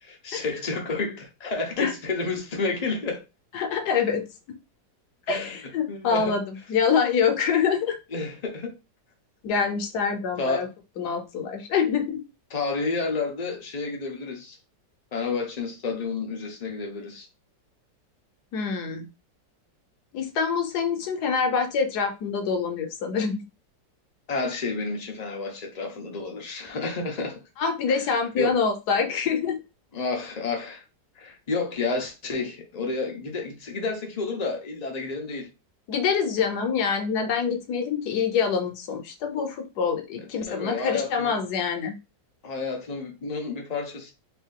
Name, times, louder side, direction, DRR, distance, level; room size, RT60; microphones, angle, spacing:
voice 1, 0.0-3.2 5.3-5.6 5.9-6.4 8.1-8.7 10.4-10.7 12.5-14.6 15.1-17.3 24.3-27.4 27.9-28.0 28.4-28.6 29.9-30.8 31.2-35.5 40.2-41.4 42.4-44.1, left 3 dB, 55° left, 0.4 m, -30 dB
voice 2, 3.5-4.6 5.3-8.0 9.4-10.7 11.0-12.2 18.5-19.1 20.1-23.4 27.6-29.6 35.9-41.9, left 6 dB, 70° left, 1.2 m, -25 dB
3.5 x 2.6 x 3.6 m
omnidirectional pair, 1.9 m